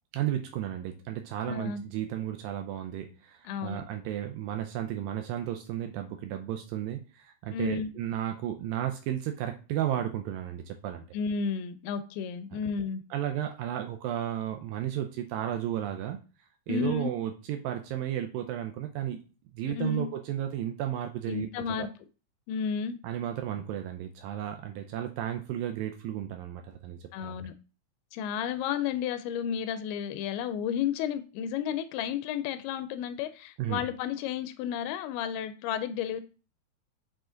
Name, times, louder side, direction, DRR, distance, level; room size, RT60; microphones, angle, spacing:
voice 1, 0.1-11.1 13.1-16.2 16.7-19.2 19.5-21.5 21.8-21.9 23.0-27.4 33.6-33.8, right 11 dB, 80° right, 5 dB, 2.1 m, -33 dB
voice 2, 1.4-1.8 3.4-3.8 7.5-7.9 11.1-13.0 16.7-17.1 19.8-20.1 21.3-21.9 22.5-23.0 27.1-27.5 28.1-36.2, left 7 dB, 90° left, 10 dB, 2.5 m, -32 dB
6.2 x 4.9 x 3.8 m, 0.34 s
omnidirectional pair, 4.4 m